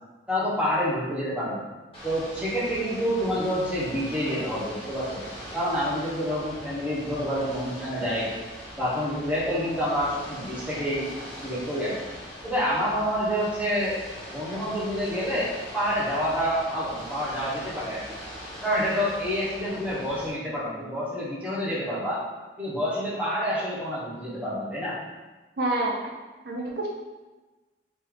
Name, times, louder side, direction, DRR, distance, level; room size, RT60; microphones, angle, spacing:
voice 1, 0.3-1.7 2.0-5.2 5.5-8.3 8.8-11.1 11.4-11.9 12.4-14.0 14.3-18.2 18.6-22.2 22.6-25.0, equal, 5° right, -9 dB, 1.2 m, -28 dB
Ocean / Boat Water vehicle, 1.9-20.3, equal, 30° left, 1.2 m, -41 dB
voice 2, 25.6-26.0 26.5-26.9, right 2 dB, 65° right, 0 dB, 0.4 m, -27 dB
3.0 x 2.9 x 3.9 m, 1.2 s
head